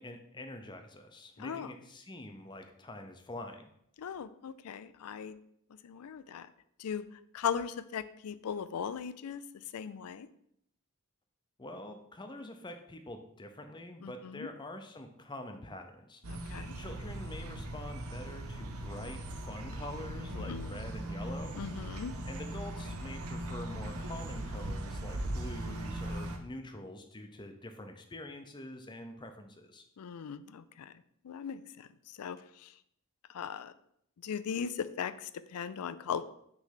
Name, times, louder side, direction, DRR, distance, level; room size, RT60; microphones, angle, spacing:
voice 1, 0.0-3.7 11.6-29.8, left 1 dB, 20° left, 6 dB, 0.6 m, -46 dB
voice 2, 1.4-1.7 4.0-5.4 5.8-6.5 6.8-7.0 7.3-9.4 9.7-10.3 14.0-14.5 16.3-16.7 20.3-20.7 21.5-22.1 30.0-30.9 31.2-31.9 32.2-32.7 33.3-33.7 34.2-36.2, left 7 dB, 85° left, 14 dB, 0.4 m, -38 dB
sound 1, 16.2-26.4, right 1 dB, 80° right, 0.8 m, -39 dB
6.1 x 3.3 x 5.7 m, 0.72 s
head